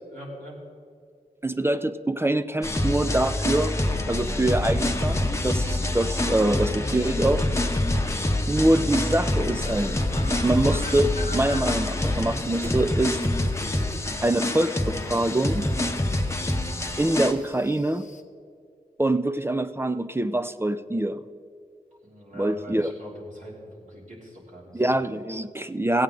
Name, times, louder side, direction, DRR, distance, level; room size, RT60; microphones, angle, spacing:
voice 1, 0.0-0.6 5.5-5.7 22.0-24.8, right 1 dB, 55° right, -4 dB, 3.1 m, -42 dB
voice 2, 1.4-3.7 4.1-7.4 8.5-10.0 10.4-13.2 14.2-15.7 17.0-18.0 19.0-21.2 22.3-22.9 24.7-26.0, right 1 dB, 15° right, 12 dB, 0.4 m, -24 dB
sound 1, 2.6-17.3, left 1 dB, 20° left, 0.9 m, -26 dB
sound 2, 9.5-18.2, left 4 dB, 50° left, 0.8 m, -46 dB
sound 3, 12.1-14.3 14.7-15.0 15.4-17.1, equal, 35° right, 1.1 m, -40 dB
16.0 x 8.7 x 3.8 m, 2.3 s
cardioid pair, 60°, 16 cm